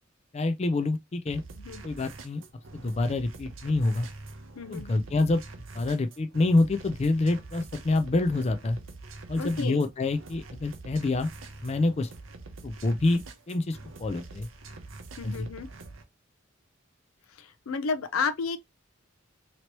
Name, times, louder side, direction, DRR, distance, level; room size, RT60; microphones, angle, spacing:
voice 1, 0.3-1.4 1.8-2.4 2.7-4.1 4.7-5.4 5.7-8.8 9.3-11.3 11.6-12.1 12.6-13.2 13.5-14.5 15.2-15.5, left 2 dB, 30° left, 0.4 m, -26 dB
sound 1, 1.3-16.0, right 3 dB, 70° right, 0.7 m, -45 dB
voice 2, 4.6-5.0 9.3-9.9 15.2-15.7 17.4-18.6, left 5 dB, 90° left, 0.5 m, -32 dB
3.0 x 2.9 x 2.9 m
head